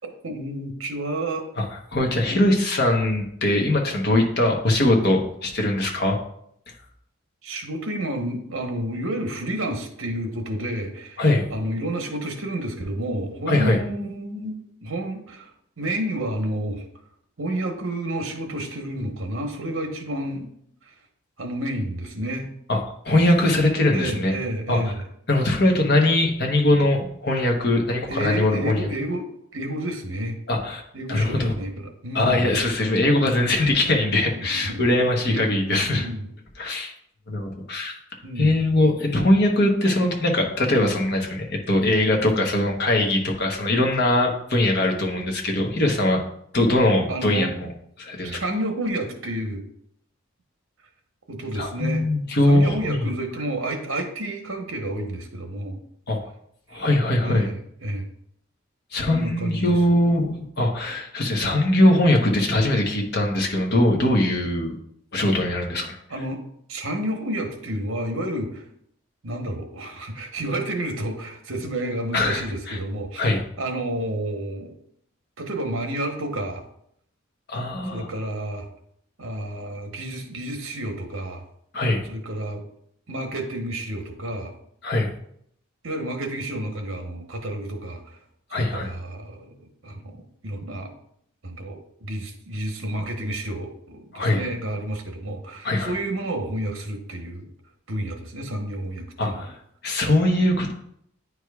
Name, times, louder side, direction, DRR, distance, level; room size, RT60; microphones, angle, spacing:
voice 1, 0.0-1.4 2.0-2.4 7.4-11.2 11.5-16.9 17.4-20.5 20.8-20.9 21.4-22.5 23.9-25.0 28.1-30.4 30.9-32.5 33.2-33.5 34.3-34.9 35.2-36.3 38.2-38.6 47.1-47.5 48.2-49.6 51.3-52.1 52.4-55.8 56.7-56.8 57.2-58.1 59.1-59.8 66.1-66.4 66.7-68.6 69.2-73.2 73.6-74.7 75.4-76.7 77.8-78.7 79.2-81.4 82.0-82.6 83.1-84.5 85.8-88.2 88.5-90.9 91.4-97.5 97.9-99.5, right 1 dB, 70° right, 4 dB, 1.0 m, -30 dB
voice 2, 1.6-6.2 11.2-11.5 13.5-13.8 22.7-22.8 23.0-24.3 24.7-24.8 25.3-28.9 30.5-30.8 31.1-31.5 32.1-36.1 36.6-36.9 37.3-38.0 38.4-46.2 46.5-47.7 48.0-48.4 51.5-53.1 56.1-56.2 56.7-57.5 58.9-64.7 65.1-66.0 72.1-72.8 73.2-73.4 77.5-78.1 81.7-82.0 84.8-85.1 88.5-88.9 94.1-94.4 95.6-95.9 99.2-99.5 99.8-100.7, left 1 dB, 50° left, 1 dB, 1.0 m, -21 dB
9.5 x 4.7 x 2.3 m, 0.71 s
head